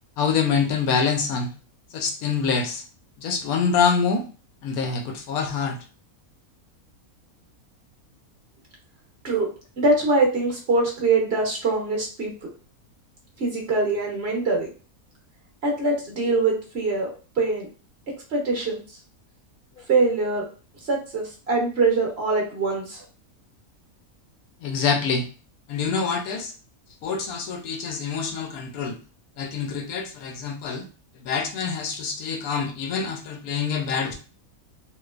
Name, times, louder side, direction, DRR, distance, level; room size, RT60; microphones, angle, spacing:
voice 1, 0.2-1.5 1.9-2.8 3.2-4.2 4.6-5.8 24.6-25.3 25.7-26.5 27.0-29.0 29.4-30.8 31.2-34.1, left 5 dB, 80° left, 4 dB, 1.1 m, -25 dB
voice 2, 9.8-12.3 13.4-14.7 15.6-17.1 17.4-17.7 18.3-18.8 19.9-20.5 20.9-23.0, right 3 dB, 50° right, -1 dB, 1.1 m, -23 dB
3.2 x 2.9 x 2.4 m, 0.36 s
omnidirectional pair, 1.5 m